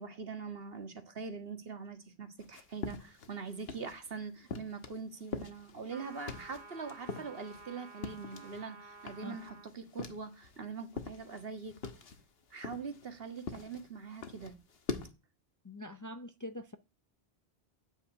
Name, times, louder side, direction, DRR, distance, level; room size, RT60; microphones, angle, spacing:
voice 1, 0.0-11.8 12.5-14.6, right 5 dB, 65° right, 1.8 m, -43 dB
sound 1, 2.4-4.1 4.5-8.7 9.0-10.6 10.9-15.1, left 5 dB, 70° left, 1.4 m, -44 dB
sound 2, 5.9-9.7, right 4 dB, 45° right, 1.7 m, -52 dB
voice 2, 15.6-16.8, left 1 dB, 25° left, 0.4 m, -44 dB
8.9 x 6.9 x 8.7 m
omnidirectional pair, 1.1 m